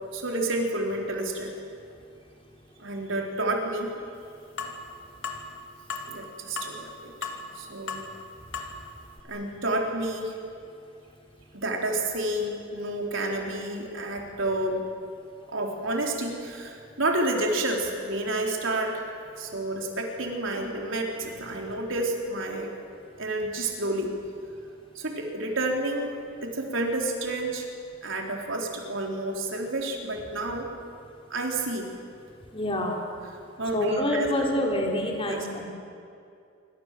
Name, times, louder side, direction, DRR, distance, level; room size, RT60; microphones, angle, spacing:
voice 1, 0.1-1.5 2.8-3.9 6.1-7.3 7.5-8.0 9.3-10.3 11.5-14.8 15.5-19.0 19.4-22.7 23.2-24.1 24.9-26.1 26.4-27.7 28.0-30.7 31.3-31.9 33.6-34.5 35.2-35.5, right 2 dB, 65° right, 1 dB, 4.2 m, -30 dB
sound 1, 4.6-4.8 5.2-5.4 5.9-6.1 6.6-6.8 7.2-7.5 7.9-8.1 8.5-8.7 9.2-9.3, left 5 dB, 65° left, 3.0 m, -34 dB
voice 2, 32.5-33.0 33.7-35.6, left 1 dB, 25° left, 0 dB, 3.9 m, -27 dB
27.0 x 25.5 x 7.7 m, 2.5 s
head